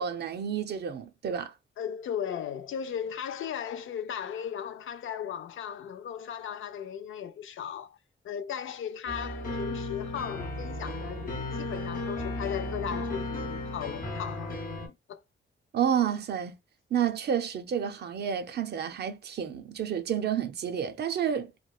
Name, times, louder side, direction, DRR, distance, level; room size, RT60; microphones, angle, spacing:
voice 1, 0.0-1.5 15.7-16.5 16.9-21.5, right 8 dB, 55° right, 0.5 m, -30 dB
voice 2, 1.8-8.0 8.2-14.5 14.9-15.2, left 8 dB, 75° left, 0.4 m, -36 dB
sound 1, 9.1-14.9, left 2 dB, 40° left, 0.7 m, -35 dB
3.0 x 2.3 x 2.2 m
wide cardioid pair, 170°, 21 cm